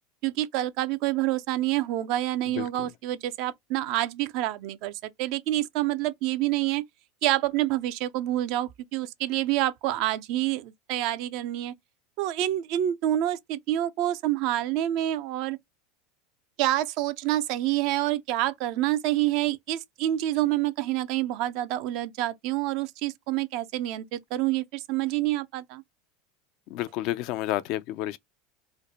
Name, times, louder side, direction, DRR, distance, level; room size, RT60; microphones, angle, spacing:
voice 1, 0.2-6.8 7.2-11.7 12.2-15.6 16.6-25.8, right 14 dB, 60° right, 0.5 m, -27 dB
voice 2, 2.5-2.9 26.7-28.2, left 15 dB, 60° left, 0.4 m, -30 dB
3.2 x 2.1 x 4.0 m
hypercardioid pair, 90°, 0 cm